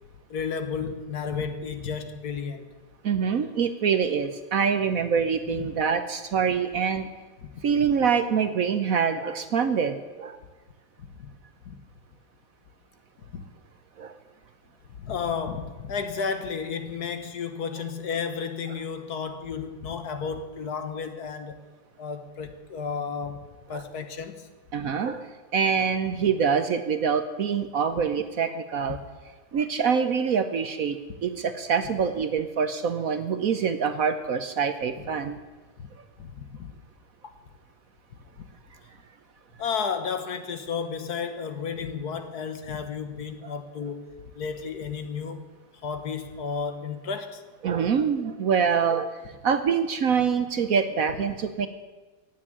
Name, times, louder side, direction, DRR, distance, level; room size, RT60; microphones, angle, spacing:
voice 1, 0.3-2.7 5.5-5.7 7.4-7.6 11.2-11.3 11.6-11.7 13.3-13.4 14.9-21.6 22.0-24.5 35.8-35.9 36.2-36.7 37.2-37.4 39.6-44.1 44.3-45.5 45.8-47.4, left 6 dB, 55° left, 1.6 m, -32 dB
voice 2, 3.0-7.1 7.6-10.4 14.0-14.1 23.7-23.8 24.7-25.3 25.5-29.0 29.5-35.4 47.6-51.7, right 6 dB, 60° right, 0.9 m, -25 dB
16.5 x 7.3 x 10.0 m
omnidirectional pair, 2.2 m